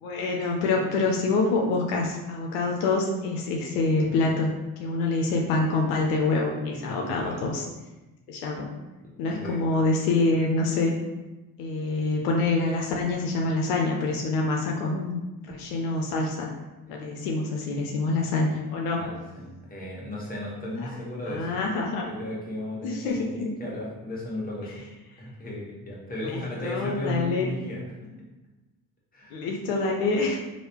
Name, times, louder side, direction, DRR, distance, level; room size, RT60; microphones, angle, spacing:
voice 1, 0.0-4.5 4.8-7.6 8.3-8.7 9.2-11.0 11.6-16.5 16.9-19.0 21.3-22.0 22.8-23.5 26.2-27.5 29.3-30.4, left 3 dB, 80° left, 0 dB, 0.6 m, -26 dB
voice 2, 6.9-7.5 9.0-9.8 16.9-17.0 19.0-21.6 22.0-23.3 23.6-24.9 25.2-28.1 29.1-29.4, left 1 dB, 20° left, -5 dB, 1.2 m, -35 dB
3.1 x 2.6 x 2.9 m, 1.1 s
hypercardioid pair, 60°, 43 cm